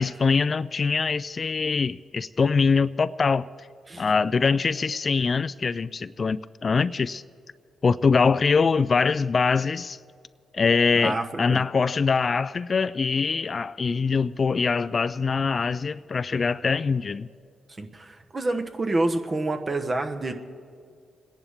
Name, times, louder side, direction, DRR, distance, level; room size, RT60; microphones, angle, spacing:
voice 1, 0.0-3.5 4.0-7.2 7.8-10.0 10.5-17.3, left 5 dB, 45° left, 16 dB, 0.3 m, -23 dB
voice 2, 10.9-11.6 17.8-20.3, right 2 dB, 35° right, 6 dB, 1.1 m, -28 dB
28.5 x 10.5 x 3.6 m, 2.3 s
cardioid pair, 75°, 0 cm